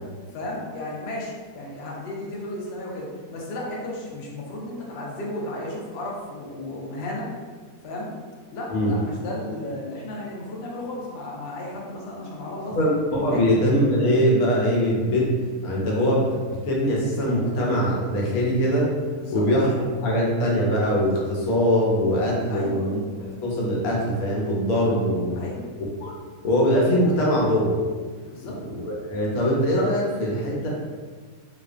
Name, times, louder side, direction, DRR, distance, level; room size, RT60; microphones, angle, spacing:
voice 1, 0.3-7.3 7.8-8.1 8.5-12.8 13.3-13.4 19.2-19.5 22.5-22.9 25.4-25.7 28.3-28.6, left 1 dB, 65° left, -3 dB, 0.6 m, -34 dB
voice 2, 12.8-15.3 15.6-18.9 19.3-25.4 25.8-26.1 26.4-27.8 28.4-30.7, equal, 80° left, -4 dB, 1.1 m, -22 dB
2.4 x 2.3 x 2.4 m, 1.5 s
omnidirectional pair, 1.6 m